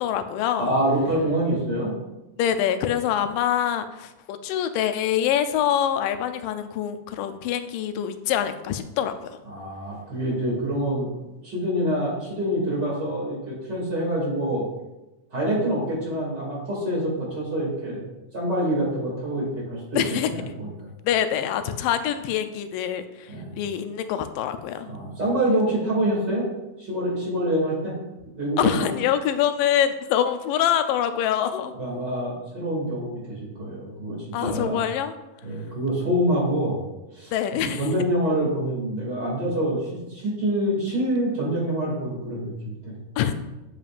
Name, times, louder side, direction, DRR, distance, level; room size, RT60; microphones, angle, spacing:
voice 1, 0.0-0.8 2.4-9.1 19.9-20.3 21.0-24.9 28.6-31.7 34.3-35.2 37.3-37.9 43.2-43.3, left 10 dB, 90° left, 10 dB, 2.2 m, -25 dB
voice 2, 0.6-1.9 9.5-11.1 11.4-14.7 15.3-18.0 18.3-20.7 23.3-23.5 24.8-26.5 26.8-27.9 28.4-28.7 31.7-34.8 35.4-36.8 37.2-37.3 37.8-39.8 40.1-42.9, right 1 dB, 35° right, -5 dB, 2.7 m, -26 dB
8.8 x 7.5 x 2.5 m, 1.0 s
omnidirectional pair, 3.8 m